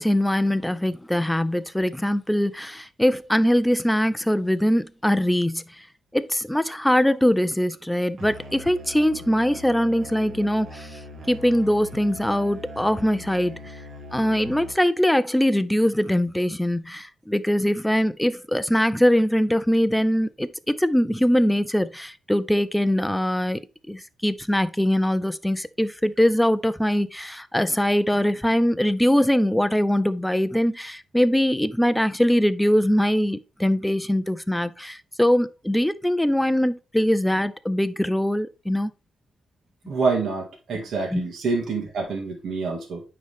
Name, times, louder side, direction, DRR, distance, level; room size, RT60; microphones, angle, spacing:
voice 1, 0.0-5.8 6.1-11.0 11.3-13.7 14.1-23.6 23.9-38.9 41.1-41.3, equal, 5° left, 0.4 m, -22 dB
Musical instrument, 8.2-15.0, left 1 dB, 50° right, 1.3 m, -41 dB
voice 2, 39.9-43.0, right 4 dB, 70° right, 2.0 m, -27 dB
9.2 x 3.8 x 3.5 m
cardioid pair, 115°, 0 cm